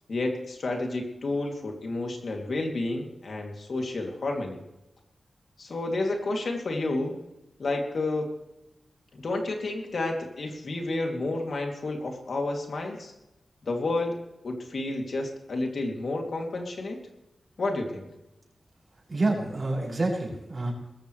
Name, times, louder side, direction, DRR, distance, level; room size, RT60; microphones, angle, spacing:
voice 1, 0.1-4.6 5.6-7.1 7.6-8.3 9.1-13.1 13.6-14.2 14.4-17.0 17.6-18.1, left 2 dB, 65° left, 2 dB, 2.8 m, -30 dB
voice 2, 19.1-20.7, right 2 dB, 40° right, -3 dB, 6.9 m, -28 dB
20.5 x 14.5 x 3.3 m, 0.95 s
wide cardioid pair, 100°, 0 cm